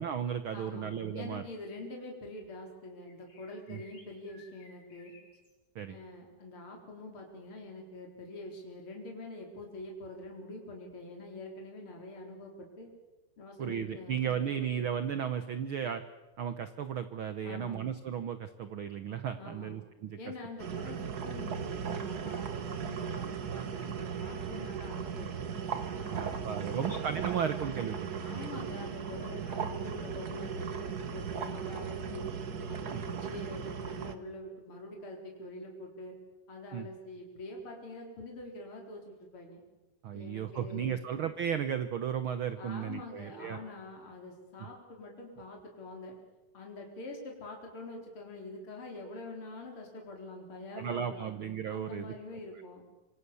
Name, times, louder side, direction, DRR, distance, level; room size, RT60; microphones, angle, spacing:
voice 1, 0.0-1.4 3.7-3.8 5.7-6.0 13.6-16.0 16.4-20.2 26.1-28.5 32.9-33.0 36.7-36.9 40.0-43.6 50.7-52.1, right 8 dB, 90° right, 11 dB, 1.1 m, -35 dB
voice 2, 0.5-5.1 5.9-12.9 13.4-14.3 14.6-14.8 17.4-17.8 19.4-19.7 20.2-25.5 26.0-27.0 28.2-32.3 32.7-36.2 36.5-39.6 40.1-41.0 42.6-46.1 46.5-51.3 51.7-52.8, left 2 dB, 40° left, 1 dB, 5.0 m, -45 dB
sound 1, 3.0-5.6, left 3 dB, 75° left, 7.6 m, -60 dB
sound 2, 20.6-34.1, right 7 dB, 65° right, 0.9 m, -37 dB
26.0 x 25.5 x 7.0 m, 1.1 s
omnidirectional pair, 3.8 m